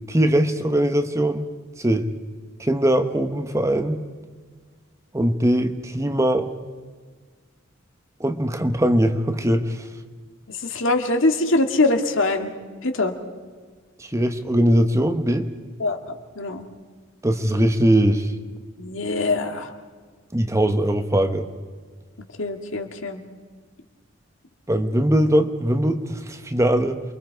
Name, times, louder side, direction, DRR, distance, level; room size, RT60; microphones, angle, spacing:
voice 1, 0.1-1.5 1.8-2.1 2.6-4.0 5.1-6.5 8.2-9.9 14.0-15.5 17.2-18.3 20.3-21.5 24.7-27.0, right 1 dB, 15° right, 7 dB, 1.0 m, -21 dB
voice 2, 10.6-12.5 12.8-13.1 15.8-16.6 18.8-19.7 22.4-23.2, left 2 dB, 75° left, 5 dB, 2.0 m, -23 dB
28.5 x 23.0 x 4.7 m, 1.5 s
head